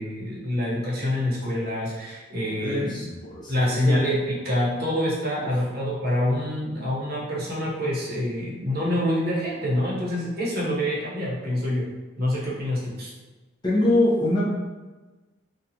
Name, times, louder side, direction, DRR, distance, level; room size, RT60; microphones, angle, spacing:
voice 1, 0.0-3.0 3.5-11.9 12.2-13.1, left 1 dB, 50° right, -6 dB, 0.8 m, -26 dB
voice 2, 2.6-4.0 5.4-5.5 13.6-14.5, left 1 dB, 20° left, -8 dB, 0.7 m, -24 dB
2.7 x 2.3 x 2.8 m, 1.2 s
head